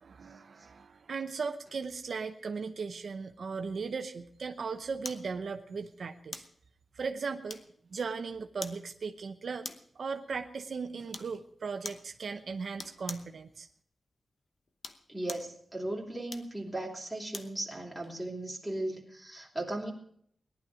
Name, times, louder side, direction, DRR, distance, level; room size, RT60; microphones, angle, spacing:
voice 1, 0.0-6.4 6.9-7.6 7.9-9.7 10.0-13.7, right 5 dB, 70° right, 7 dB, 0.7 m, -37 dB
sound 1, 5.0-5.3 6.3-6.6 7.5-7.9 8.6-8.8 9.6-10.0 11.1-11.4 11.8-12.1 12.8-13.3 14.7-15.5 16.3-17.6 18.0-18.2, left 3 dB, 55° left, 0.9 m, -43 dB
voice 2, 15.1-19.9, right 1 dB, 5° right, -2 dB, 3.0 m, -37 dB
18.5 x 11.0 x 5.0 m, 0.64 s
wide cardioid pair, 120°, 0 cm